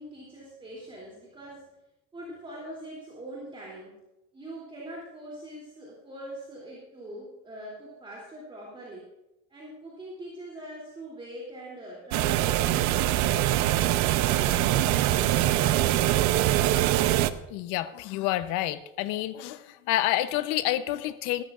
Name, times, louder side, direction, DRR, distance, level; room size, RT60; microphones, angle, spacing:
voice 1, 0.0-1.7 2.1-3.9 4.3-9.1 9.5-13.1, right 1 dB, 20° right, 3.0 m, -42 dB
sound 1, 12.1-17.3, right 13 dB, 70° right, 0.7 m, -23 dB
voice 2, 17.5-21.4, left 14 dB, 85° left, 0.9 m, -28 dB
19.0 x 14.0 x 2.5 m
cardioid pair, 150°, 29 cm